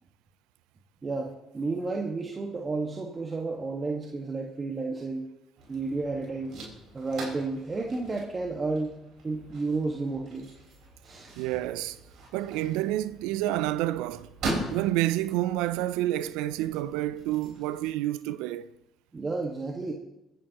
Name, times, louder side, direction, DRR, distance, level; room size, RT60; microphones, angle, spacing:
voice 1, 1.0-5.3 5.7-6.5 6.9-8.9 9.2-10.5 11.0-11.3 19.1-19.9, right 3 dB, 30° right, 1.5 m, -31 dB
sound 1, 5.6-17.9, right 2 dB, 65° right, 4.5 m, -41 dB
voice 2, 11.4-12.0 12.3-14.3 14.7-18.7, right 15 dB, 80° right, 0.4 m, -29 dB
25.0 x 10.5 x 2.9 m
hypercardioid pair, 60°, 0 cm